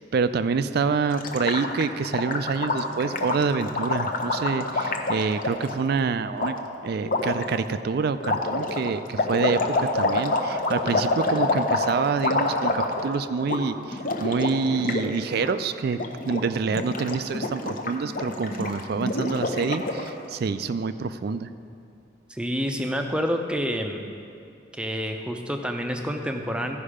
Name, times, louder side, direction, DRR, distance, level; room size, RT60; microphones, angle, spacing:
voice 1, 0.0-6.6 6.8-16.0 16.3-21.5, right 5 dB, 55° right, 12 dB, 0.3 m, -27 dB
Gurgling, 1.1-5.7 6.4-6.5 7.1-7.4 8.2-13.2 13.4-13.6 13.9-15.1 15.3-15.5 15.9-16.4 16.7-20.1, left 2 dB, 45° left, 0.7 m, -27 dB
voice 2, 22.3-24.0 24.7-26.8, equal, 5° right, 4 dB, 0.5 m, -28 dB
15.0 x 5.4 x 4.9 m, 2.5 s
head